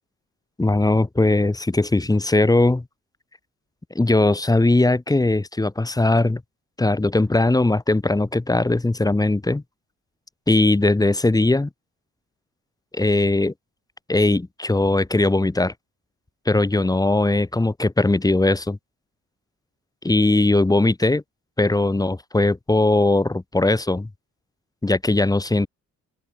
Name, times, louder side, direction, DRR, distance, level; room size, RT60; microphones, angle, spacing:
voice 1, 0.6-2.8 4.0-6.4 6.8-9.6 10.5-11.7 12.9-13.5 14.1-15.7 16.5-18.8 20.0-21.2 21.6-24.1 24.8-25.7, left 2 dB, 10° left, 1.7 m, -19 dB
open air
cardioid pair, 90°, 30 cm